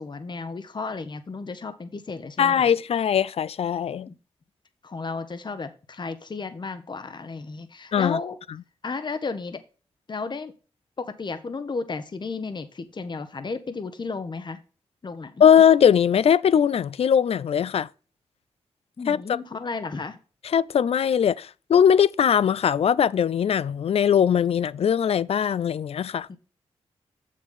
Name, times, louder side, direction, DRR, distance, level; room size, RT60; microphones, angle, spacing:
voice 1, 0.0-2.7 4.1-4.2 4.8-8.4 8.8-9.6 10.1-10.5 11.0-14.6 15.0-15.4 19.0-20.2 26.3-26.4, left 4 dB, 45° left, 1.0 m, -33 dB
voice 2, 2.4-4.1 7.9-8.2 15.4-17.9 19.1-19.2 20.5-26.3, left 8 dB, 65° left, 0.4 m, -20 dB
7.2 x 6.4 x 3.7 m
cardioid pair, 55°, 11 cm